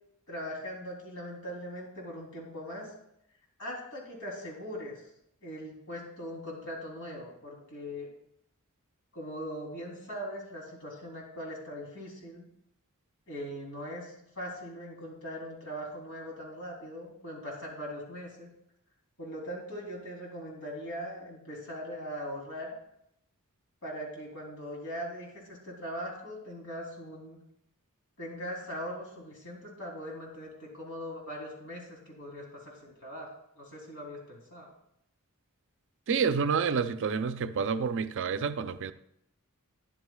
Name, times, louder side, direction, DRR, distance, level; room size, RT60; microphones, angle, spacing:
voice 1, 0.3-2.9 3.6-5.0 5.4-8.1 9.1-12.5 13.3-18.5 19.2-22.7 23.8-27.4 28.2-33.3 33.6-34.7, equal, 70° left, 3.1 m, -40 dB
voice 2, 36.1-38.9, right 6 dB, 55° right, 0.5 m, -29 dB
13.0 x 10.5 x 2.3 m
head